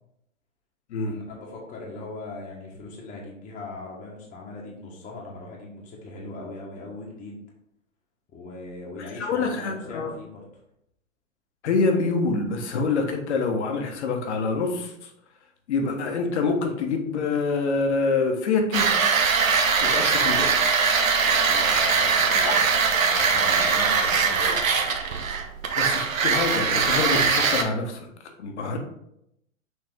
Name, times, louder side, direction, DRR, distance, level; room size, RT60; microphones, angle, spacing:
voice 1, 1.1-7.4 8.3-10.6 21.3-22.8 23.2-24.6, left 2 dB, 20° left, -3 dB, 1.4 m, -39 dB
voice 2, 9.2-10.1 11.6-14.9 15.7-18.9 19.8-20.5 22.5-22.6 24.4-24.6 25.8-28.1 28.4-28.8, left 4 dB, 55° left, 4 dB, 1.4 m, -26 dB
sound 1, 18.7-27.6, right 5 dB, 80° right, 1.0 m, -21 dB
6.5 x 4.0 x 3.7 m, 0.77 s
hypercardioid pair, 120°, 40 cm